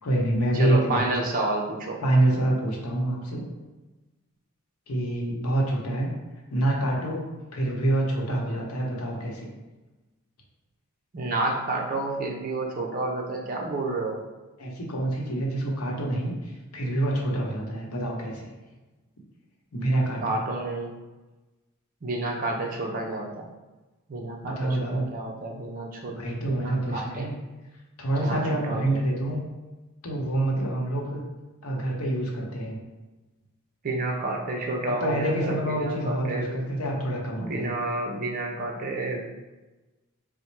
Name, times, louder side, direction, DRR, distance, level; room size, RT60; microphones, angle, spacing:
voice 1, 0.0-1.1 2.0-3.5 4.9-6.1 6.5-7.2 7.5-9.5 14.6-18.5 19.7-20.4 24.4-25.1 26.1-27.3 28.0-29.4 30.0-31.2 31.6-32.8 35.0-37.7, right 1 dB, 75° left, -1 dB, 0.9 m, -26 dB
voice 2, 0.5-2.0 11.1-14.2 20.2-20.9 22.0-23.5 24.1-26.2 26.5-27.3 28.2-29.0 33.8-36.7 37.4-39.2, right 2 dB, 40° right, 0 dB, 0.5 m, -30 dB
4.1 x 2.1 x 4.5 m, 1.1 s
head